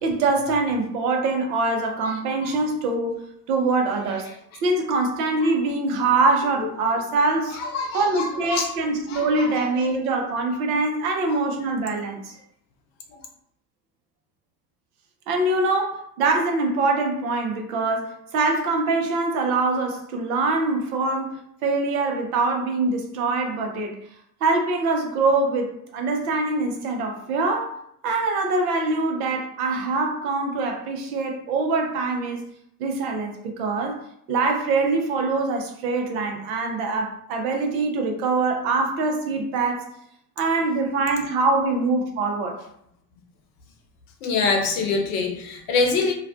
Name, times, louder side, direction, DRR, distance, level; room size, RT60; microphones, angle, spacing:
voice 1, 0.0-3.2 3.5-4.3 4.6-7.6 7.9-12.3 15.3-24.0 24.4-27.7 28.0-32.4 32.8-34.0 34.3-39.8 40.4-42.6, right 3 dB, 60° right, 3 dB, 0.7 m, -24 dB
voice 2, 7.6-8.7 9.1-9.3 44.2-46.1, left 4 dB, 60° left, 4 dB, 0.7 m, -24 dB
2.4 x 2.1 x 2.4 m, 0.70 s
figure-of-eight pair, 60°, 50 cm